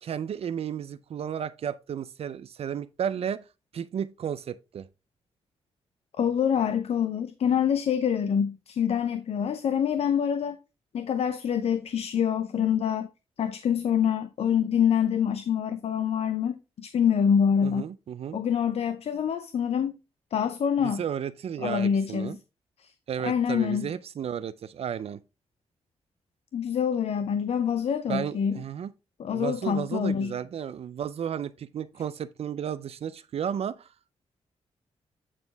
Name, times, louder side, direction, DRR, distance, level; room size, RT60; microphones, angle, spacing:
voice 1, 0.0-3.4 3.7-4.9 17.6-18.4 20.8-22.4 23.1-25.2 28.1-28.9 29.3-33.9, right 8 dB, 65° right, 0.4 m, -33 dB
voice 2, 6.2-10.6 10.9-13.1 13.4-17.8 18.3-20.0 20.3-21.0 21.6-22.4 22.8-22.9 23.2-23.9 26.5-28.6 29.2-30.3, left 8 dB, 65° left, 0.5 m, -26 dB
8.9 x 4.2 x 3.3 m
cardioid pair, 95°, 11 cm